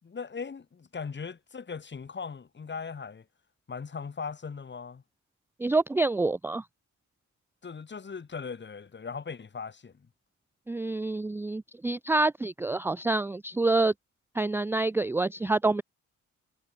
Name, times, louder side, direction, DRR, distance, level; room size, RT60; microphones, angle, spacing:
voice 1, 0.0-3.3 3.7-5.0 7.6-10.1, left 5 dB, 35° left, 6.8 m, -39 dB
voice 2, 5.6-6.6 10.7-13.9 14.4-15.8, right 2 dB, 10° right, 0.4 m, -27 dB
cardioid pair, 90°, 30 cm